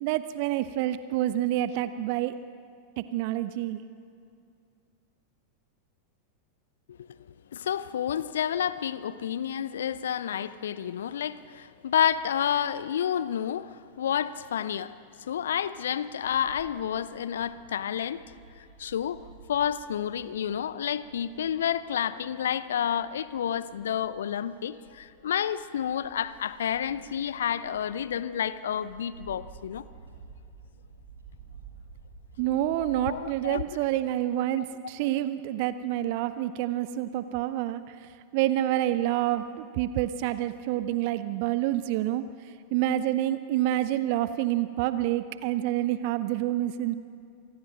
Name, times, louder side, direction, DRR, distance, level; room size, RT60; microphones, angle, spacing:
voice 1, 0.0-2.3 3.0-3.8 32.4-42.2 42.7-47.0, right 13 dB, 45° right, 0.6 m, -28 dB
voice 2, 7.5-14.9 15.3-18.2 18.8-19.2 19.5-29.9 32.9-33.6, left 9 dB, 65° left, 0.6 m, -30 dB
Bird / Wind, 16.2-33.2, right 5 dB, 75° right, 3.7 m, -52 dB
26.5 x 19.5 x 6.3 m
figure-of-eight pair, 90°, 0 cm